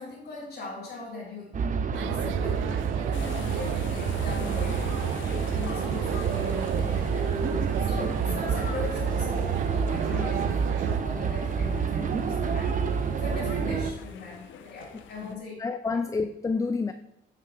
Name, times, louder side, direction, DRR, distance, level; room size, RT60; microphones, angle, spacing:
voice 1, 0.0-1.6 1.9-5.0 5.3-15.6 15.9-16.0, left 3 dB, 50° left, -8 dB, 2.7 m, -40 dB
sound 1, 1.5-13.9, right 6 dB, 40° right, 0.7 m, -28 dB
sound 2, 1.9-11.0, right 12 dB, 80° right, 0.4 m, -37 dB
voice 2, 2.2-2.6 15.2-16.9, left 4 dB, 15° left, 9 dB, 0.4 m, -30 dB
sound 3, 3.1-15.4, left 7 dB, 75° left, 0.7 m, -44 dB
8.9 x 5.7 x 3.4 m, 0.84 s
cardioid pair, 90°, 20 cm